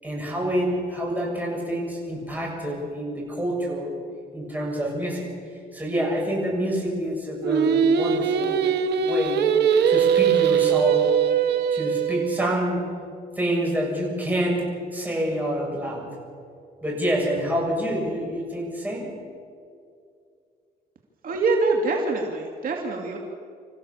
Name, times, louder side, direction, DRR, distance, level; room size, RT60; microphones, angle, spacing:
voice 1, 0.0-3.9 4.3-5.2 5.7-8.6 9.0-9.5 9.9-11.1 11.7-12.8 13.4-14.7 14.9-16.1 16.8-19.1, equal, 10° right, -2 dB, 7.1 m, -27 dB
Singing, 7.4-12.6, right 7 dB, 85° right, 1.3 m, -21 dB
voice 2, 21.2-23.2, right 3 dB, 55° right, 1 dB, 2.5 m, -24 dB
27.0 x 15.0 x 7.2 m, 2.3 s
cardioid pair, 115°, 17 cm